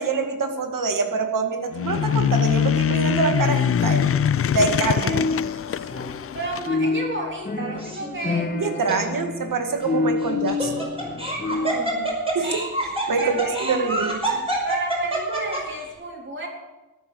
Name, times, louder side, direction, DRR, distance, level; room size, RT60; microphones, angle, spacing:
voice 1, 0.0-4.1 4.5-5.2 8.5-10.9 12.3-14.4, right 4 dB, 75° right, 5 dB, 2.0 m, -25 dB
sound 1, 1.7-6.7, left 8 dB, 45° left, 0.4 m, -23 dB
sound 2, 5.0-6.4 6.6-11.9, left 4 dB, 25° left, 1.3 m, -28 dB
voice 2, 6.3-9.1 11.5-12.2 13.2-14.1 14.6-16.5, right 2 dB, 35° right, 0 dB, 3.6 m, -32 dB
Laughter, 7.8-8.3 8.9-9.0 10.2-15.8, right 1 dB, 15° right, 5.4 m, -27 dB
14.0 x 12.0 x 6.3 m, 1.1 s
wide cardioid pair, 105°, 33 cm